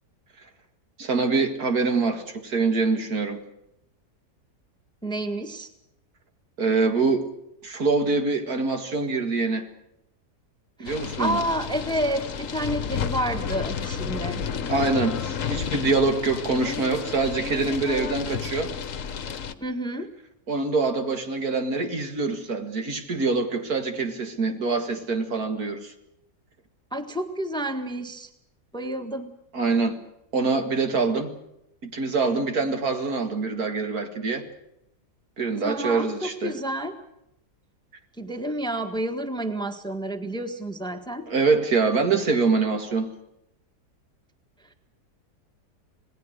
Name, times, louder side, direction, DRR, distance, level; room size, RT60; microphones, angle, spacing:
voice 1, 1.0-3.4 6.6-7.3 7.6-9.7 10.8-11.4 14.7-18.7 20.5-25.9 29.5-30.0 30.3-31.3 31.8-34.5 35.4-36.5 41.3-43.1, right 4 dB, 60° right, 6 dB, 2.4 m, -24 dB
voice 2, 5.0-5.7 10.8-14.4 19.6-20.1 26.9-28.3 28.7-29.3 35.6-37.0 38.2-41.3, right 1 dB, 5° left, 7 dB, 1.4 m, -30 dB
sound 1, 10.8-19.5, left 7 dB, 55° left, 1.3 m, -31 dB
27.0 x 19.0 x 6.6 m, 0.82 s
omnidirectional pair, 1.8 m